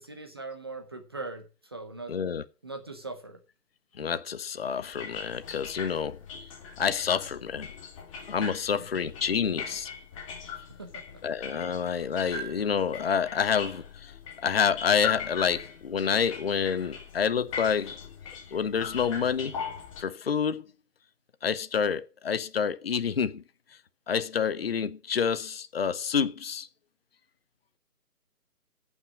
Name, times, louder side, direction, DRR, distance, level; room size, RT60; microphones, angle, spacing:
voice 1, 0.0-2.2 2.6-3.4 8.8-9.0 10.5-11.2, right 3 dB, 15° right, 0.7 m, -41 dB
voice 2, 2.1-2.4 4.0-6.2 6.8-7.7 8.3-9.9 11.2-14.1 14.4-18.0 18.5-19.6 20.0-20.7 21.4-23.4 24.1-26.7, left 7 dB, 40° left, 0.7 m, -28 dB
sound 1, 4.8-20.0, left 6 dB, 20° left, 1.8 m, -40 dB
15.0 x 6.0 x 6.1 m
figure-of-eight pair, 155°, 48 cm